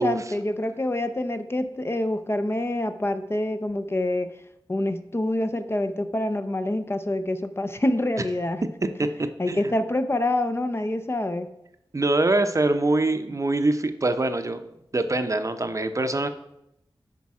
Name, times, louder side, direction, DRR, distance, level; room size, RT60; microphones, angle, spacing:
voice 1, 0.0-4.3 4.7-8.6 9.4-11.5, left 1 dB, 30° left, 9 dB, 0.5 m, -26 dB
voice 2, 9.0-9.6 11.9-14.6 14.9-16.3, right 2 dB, 35° right, 9 dB, 0.6 m, -24 dB
8.4 x 5.2 x 4.8 m, 0.82 s
wide cardioid pair, 65°, 9 cm